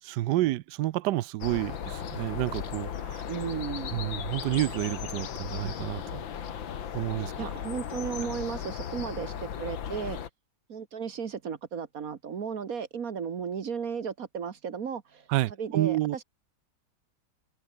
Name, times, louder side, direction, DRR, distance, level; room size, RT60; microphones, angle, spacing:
voice 1, 0.0-3.2 3.9-6.2 6.9-7.3 15.3-16.2, right 16 dB, 70° right, 1.0 m, -29 dB
sound 1, 1.4-10.3, left 8 dB, 65° left, 2.2 m, -36 dB
voice 2, 3.3-4.0 7.2-10.2 10.7-16.2, right 7 dB, 50° right, 1.5 m, -35 dB
omnidirectional pair, 2.3 m